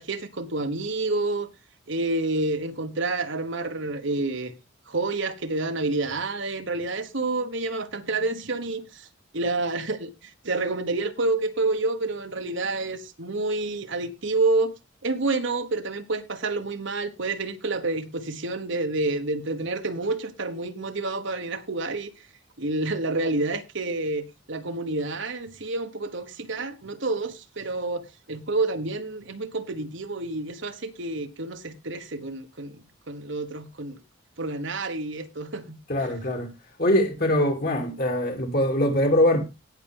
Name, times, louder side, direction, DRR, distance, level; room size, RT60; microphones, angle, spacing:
voice 1, 0.0-1.5 1.9-4.5 4.9-9.1 9.3-14.7 15.0-22.1 22.6-34.0 34.4-36.1, right 2 dB, 60° right, 1.3 m, -29 dB
voice 2, 35.9-36.5 36.8-39.4, left 1 dB, 45° left, 2.9 m, -22 dB
17.5 x 6.1 x 3.5 m
head